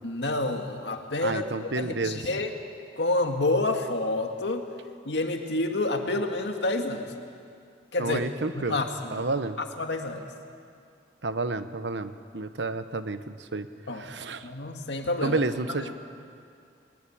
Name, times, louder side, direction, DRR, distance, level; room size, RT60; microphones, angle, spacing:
voice 1, 0.0-2.5 3.0-4.6 5.1-7.1 7.9-8.2 8.5-9.3 9.6-10.3 13.9-14.1 14.4-15.4 15.7-15.9, left 2 dB, 75° left, 4 dB, 2.0 m, -29 dB
voice 2, 1.2-2.2 8.0-8.8 9.1-9.6 11.2-13.7 13.9-14.5 15.2-15.9, right 3 dB, 85° right, 11 dB, 1.1 m, -30 dB
20.5 x 20.5 x 8.7 m, 2.4 s
head